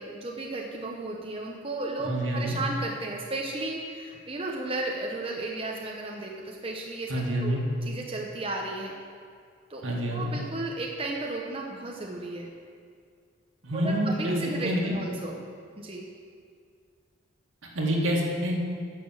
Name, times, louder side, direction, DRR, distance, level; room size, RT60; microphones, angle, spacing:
voice 1, 0.0-7.1 7.4-8.9 9.7-12.5 13.7-15.4 15.8-16.1, right 2 dB, 25° right, -1 dB, 0.8 m, -34 dB
voice 2, 2.0-2.6 7.1-7.6 9.8-10.3 13.6-15.0 17.6-18.6, equal, 75° right, -2 dB, 2.0 m, -28 dB
10.5 x 6.8 x 7.3 m, 2.2 s
head